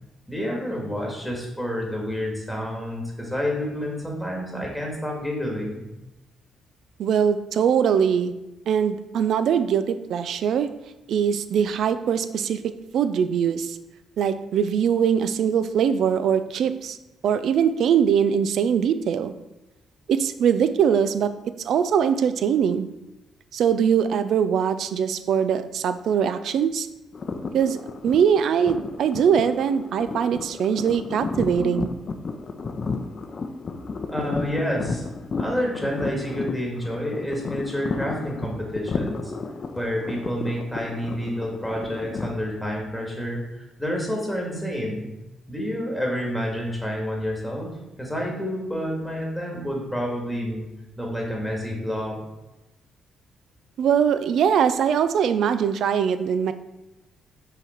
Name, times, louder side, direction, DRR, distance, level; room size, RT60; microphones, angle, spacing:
voice 1, 0.3-5.8 34.1-35.1 35.4-39.3 39.8-45.1 45.5-47.7 48.0-50.6 51.0-52.2, equal, ahead, -1 dB, 2.0 m, -29 dB
voice 2, 7.0-8.3 8.7-10.7 11.1-12.6 12.9-13.8 14.2-17.0 17.2-19.3 20.1-21.3 21.6-22.9 23.5-26.9 27.5-27.8 28.0-31.9 53.8-56.5, right 8 dB, 70° right, 12 dB, 0.4 m, -22 dB
sound 1, 27.1-42.3, left 4 dB, 45° left, 0.6 m, -32 dB
5.7 x 4.0 x 4.4 m, 1.0 s
cardioid pair, 90°, 0 cm